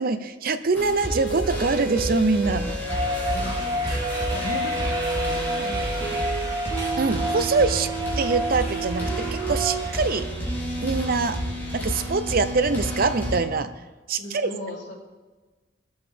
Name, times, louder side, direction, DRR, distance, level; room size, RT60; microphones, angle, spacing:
voice 1, 0.0-2.7 7.0-7.9 8.2-9.1 9.5-10.3 10.8-11.4 11.7-13.7 14.1-14.5, right 4 dB, 55° right, 11 dB, 0.7 m, -24 dB
sound 1, 0.7-13.4, right 2 dB, 10° left, 3.2 m, -29 dB
sound 2, 2.8-10.0, equal, 20° right, 2.4 m, -30 dB
voice 2, 2.9-6.2 14.2-14.9, left 2 dB, 80° left, -4 dB, 3.1 m, -37 dB
20.0 x 7.9 x 3.5 m, 1.3 s
head